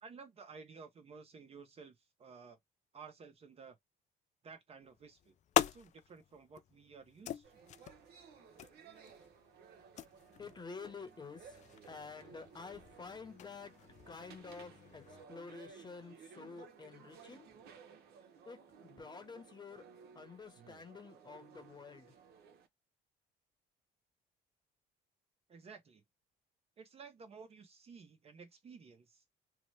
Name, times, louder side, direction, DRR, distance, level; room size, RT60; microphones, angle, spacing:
voice 1, 0.0-2.6 2.9-3.8 4.4-5.4 5.6-7.6 25.5-26.0 26.8-29.2, right 5 dB, 35° right, 0.7 m, -54 dB
sound 1, 4.8-15.2, left 10 dB, 45° left, 0.4 m, -42 dB
sound 2, 7.4-22.7, right 6 dB, 70° right, 0.8 m, -58 dB
voice 2, 10.4-11.6 11.9-13.7 14.1-17.5 18.5-19.9 20.1-22.1, left 4 dB, 25° left, 1.0 m, -50 dB
3.0 x 2.1 x 3.1 m
cardioid pair, 110°, 17 cm